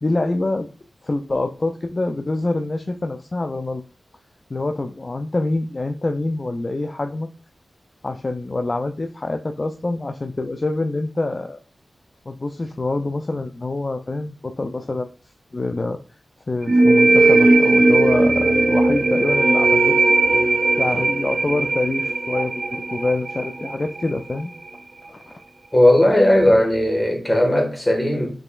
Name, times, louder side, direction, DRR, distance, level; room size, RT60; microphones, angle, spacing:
voice 1, 0.0-0.7 1.0-3.8 4.5-7.3 8.0-11.6 12.3-15.1 15.5-16.0 16.5-20.2 20.8-24.5 25.1-25.4, left 2 dB, 40° left, 0.3 m, -25 dB
sound 1, 16.7-24.1, right 2 dB, 50° right, 0.6 m, -17 dB
voice 2, 25.7-28.3, left 1 dB, 20° left, 1.5 m, -16 dB
4.7 x 3.1 x 2.4 m
cardioid pair, 50°, 0 cm